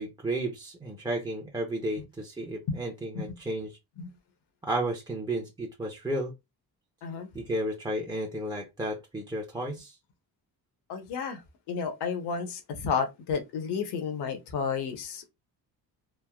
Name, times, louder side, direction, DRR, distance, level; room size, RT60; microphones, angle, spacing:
voice 1, 0.0-3.8 4.6-6.3 7.3-10.0, right 1 dB, 10° right, 0.5 m, -33 dB
voice 2, 10.9-11.4 11.7-15.3, left 6 dB, 75° left, 0.9 m, -32 dB
3.2 x 2.0 x 2.2 m
cardioid pair, 90°, 40 cm